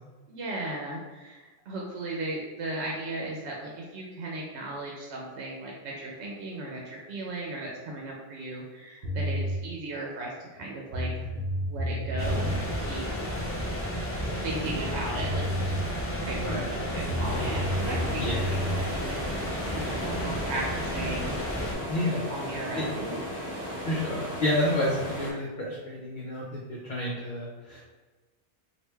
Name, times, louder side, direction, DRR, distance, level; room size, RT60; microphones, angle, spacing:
voice 1, 0.3-11.3 11.7-13.0 14.2-15.8 16.2-21.4 22.3-23.2, right 2 dB, 85° right, -2 dB, 0.9 m, -36 dB
sound 1, 9.0-9.6 10.6-10.7 10.9-12.6 14.8-14.9 15.2-15.8 17.1-18.8, equal, 60° right, 0.9 m, -30 dB
sound 2, 12.2-21.7, equal, 20° left, 0.3 m, -32 dB
sound 3, 17.2-25.3, equal, 10° right, 0.9 m, -36 dB
voice 2, 21.9-22.8 23.9-27.8, left 1 dB, 55° left, -4 dB, 0.7 m, -30 dB
3.2 x 2.5 x 3.3 m, 1.3 s
omnidirectional pair, 1.1 m